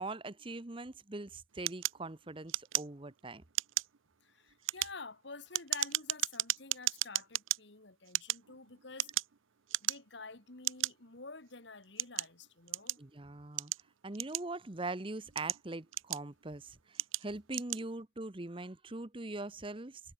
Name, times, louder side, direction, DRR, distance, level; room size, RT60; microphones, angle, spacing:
voice 1, 0.0-3.4 13.0-13.7 14.0-20.0, right 2 dB, 25° right, 0.9 m, -42 dB
sound 1, 1.7-3.2 3.5-4.0 4.5-7.6 8.1-9.4 9.7-10.2 10.6-10.9 11.6-13.1 13.6-14.7 15.2-16.4 16.9-17.2 17.5-17.8, right 15 dB, 85° right, 0.7 m, -35 dB
voice 2, 4.2-9.1 9.8-13.0, left 3 dB, 60° left, 1.9 m, -49 dB
head